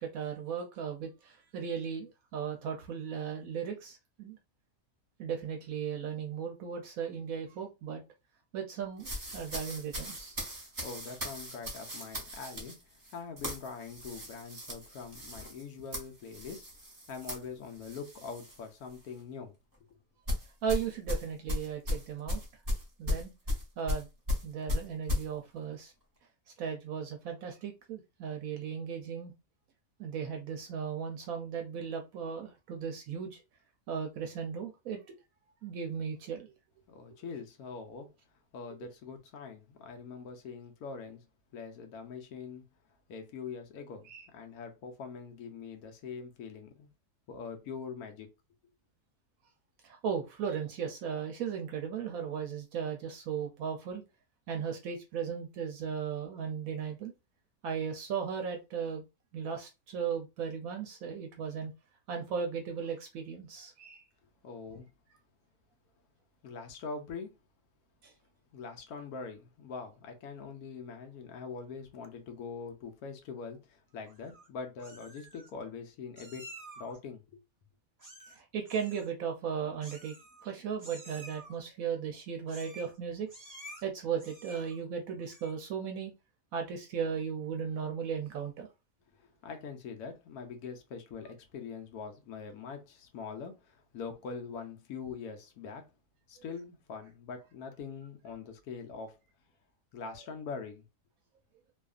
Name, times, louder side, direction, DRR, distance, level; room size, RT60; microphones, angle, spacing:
voice 1, 0.0-4.4 5.2-8.0 8.5-10.4 20.6-22.4 23.0-23.3 23.8-24.1 24.4-25.9 26.6-29.3 30.0-33.4 33.9-35.0 35.6-36.5 44.1-44.3 49.8-54.0 54.5-57.1 57.6-59.0 59.3-61.7 62.1-64.0 68.0-68.1 78.3-80.1 80.4-83.3 83.8-86.1 86.5-88.7, right 7 dB, 75° right, 0.9 m, -36 dB
sound 1, 9.0-18.6 18.9-19.2 20.3-25.3, left 1 dB, 30° right, 1.1 m, -36 dB
voice 2, 10.8-12.8 13.1-16.7 17.1-19.5 36.9-38.1 38.5-41.2 41.5-42.6 43.1-46.9 47.3-48.3 64.4-64.9 66.4-67.3 68.5-76.5 76.8-77.4 89.2-95.9 96.3-99.2 99.9-100.8, left 5 dB, 85° left, 1.1 m, -43 dB
Meow, 74.1-74.5 74.8-75.5 76.2-77.0 78.0-78.4 78.6-79.1 79.8-80.5 80.8-81.5 82.5-83.0 83.3-83.8 84.2-84.8 85.2-85.6, right 1 dB, 15° right, 0.7 m, -50 dB
2.7 x 2.4 x 2.4 m
omnidirectional pair, 1.6 m